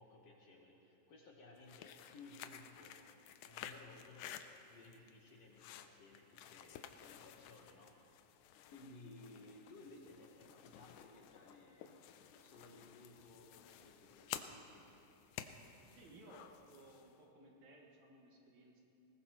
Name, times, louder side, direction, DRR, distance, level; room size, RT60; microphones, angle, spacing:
voice 1, 0.0-3.0 3.4-7.9 8.7-11.9 12.3-14.9, left 2 dB, 60° left, -1 dB, 2.0 m, -59 dB
sound 1, 1.6-17.2, left 10 dB, 80° left, 1.9 m, -53 dB
voice 2, 16.0-18.8, right 2 dB, 60° right, -1 dB, 2.9 m, -60 dB
21.0 x 19.0 x 3.0 m, 2.8 s
omnidirectional pair, 3.9 m